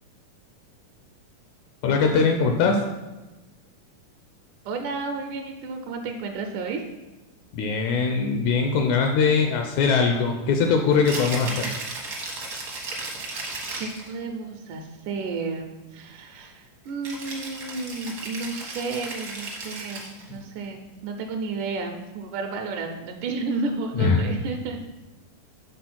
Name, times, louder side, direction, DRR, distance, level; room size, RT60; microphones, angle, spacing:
voice 1, 1.8-2.8 7.5-11.7 24.0-24.3, left 5 dB, 80° left, 3 dB, 1.7 m, -21 dB
voice 2, 4.7-6.8 13.0-13.1 13.7-24.8, right 4 dB, 80° right, 4 dB, 2.1 m, -32 dB
Rattle (instrument), 10.9-14.1 17.0-20.3, right 2 dB, 65° right, 0.9 m, -35 dB
6.9 x 3.8 x 5.9 m, 1.1 s
omnidirectional pair, 3.7 m